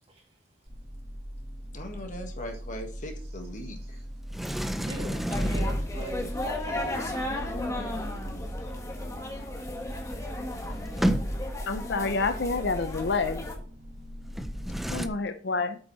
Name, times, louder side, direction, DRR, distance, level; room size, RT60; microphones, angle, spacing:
sound 1, 0.7-15.1, equal, 60° right, 3.2 m, -40 dB
voice 1, 1.7-4.0, equal, 45° left, 1.6 m, -40 dB
Sliding door, 4.3-6.3 9.8-9.9 10.1-11.7 14.3-15.1, equal, ahead, 0.5 m, -30 dB
voice 2, 4.8-7.2, right 1 dB, 30° right, 2.8 m, -40 dB
sound 2, 5.3-13.6, left 1 dB, 15° left, 1.5 m, -35 dB
voice 3, 11.7-13.5 14.9-15.8, left 4 dB, 60° left, 0.7 m, -28 dB
8.2 x 6.0 x 4.1 m
head